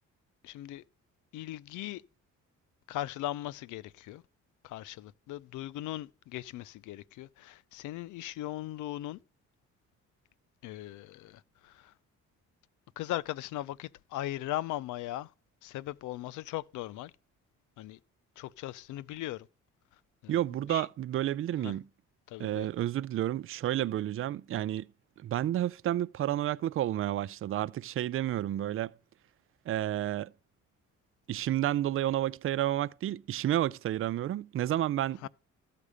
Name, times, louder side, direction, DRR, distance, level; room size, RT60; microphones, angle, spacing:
voice 1, 0.4-0.8 1.3-2.0 2.9-4.2 4.6-9.2 10.6-11.9 13.0-15.3 15.6-17.1 17.8-18.0 18.4-19.5 20.2-20.4 20.7-20.9 21.6-21.7 22.3-22.7 35.2-35.3, left 15 dB, 80° left, 0.5 m, -38 dB
voice 2, 20.3-21.9 22.4-24.9 25.2-28.9 29.7-30.3 31.3-35.3, right 12 dB, 45° right, 0.4 m, -30 dB
13.5 x 6.7 x 5.0 m
cardioid pair, 90°, 30 cm